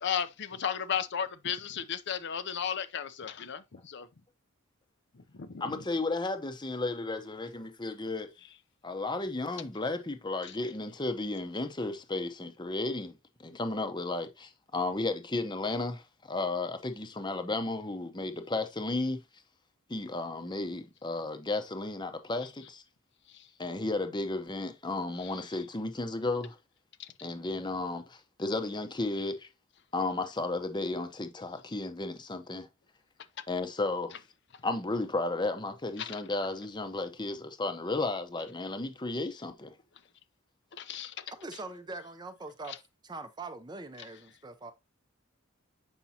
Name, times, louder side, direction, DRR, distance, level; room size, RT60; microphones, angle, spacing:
voice 1, 0.0-4.1 5.1-5.8 23.3-23.5 25.2-25.3 27.0-27.1 36.0-36.2 40.8-41.2 42.7-42.8, left 8 dB, 55° left, 0.6 m, -35 dB
voice 2, 5.6-8.3 8.8-19.2 19.9-22.8 23.6-26.6 27.2-29.5 29.9-32.7 33.5-34.2 34.6-39.8, left 2 dB, 20° left, 0.8 m, -33 dB
voice 3, 41.3-42.7 43.0-44.7, right 3 dB, 20° right, 0.6 m, -42 dB
7.1 x 5.3 x 2.8 m
head